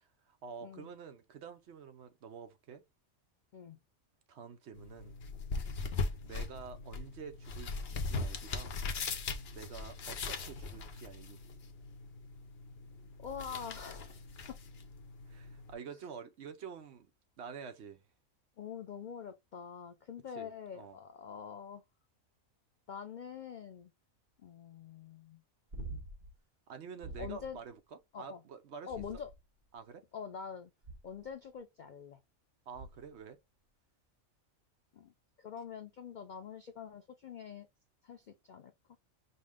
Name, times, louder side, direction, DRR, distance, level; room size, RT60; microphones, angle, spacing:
voice 1, 0.0-2.8 4.3-5.2 6.2-7.7 8.0-8.8 9.5-11.4 15.3-17.1 17.4-18.0 20.3-21.0 26.7-28.9 29.7-30.0 32.7-33.4, right 6 dB, 60° right, 0.9 m, -48 dB
sound 1, 4.7-15.7, left 4 dB, 55° left, 0.9 m, -40 dB
voice 2, 13.2-14.2 14.5-14.6 18.6-21.8 22.9-23.9 24.4-25.4 27.2-27.6 28.1-28.4 28.9-29.3 30.1-30.7 31.0-32.2 34.9-37.7 38.0-38.7, left 7 dB, 90° left, 0.4 m, -45 dB
sound 2, 25.7-26.4 27.0-27.5 28.9-29.6 30.8-31.3 32.7-33.2 35.6-35.7, right 2 dB, 40° right, 1.1 m, -46 dB
5.4 x 2.1 x 3.5 m
omnidirectional pair, 1.4 m